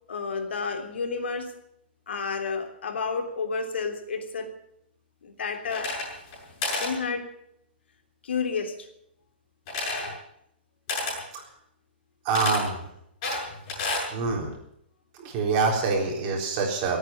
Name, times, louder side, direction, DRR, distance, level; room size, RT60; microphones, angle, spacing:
voice 1, 0.1-1.5 2.1-4.5 5.2-5.9 6.8-7.3 8.2-8.9, left 5 dB, 85° left, 5 dB, 3.2 m, -30 dB
sound 1, 5.7-6.4 6.6-6.9 9.7-10.1 10.9-11.2 12.3-12.6 13.2-14.1, left 2 dB, 30° left, 7.1 m, -30 dB
voice 2, 12.2-12.8 14.1-14.5 15.2-17.0, right 4 dB, 25° right, 0 dB, 3.9 m, -25 dB
17.5 x 8.9 x 8.8 m, 0.75 s
hypercardioid pair, 170°, 6 cm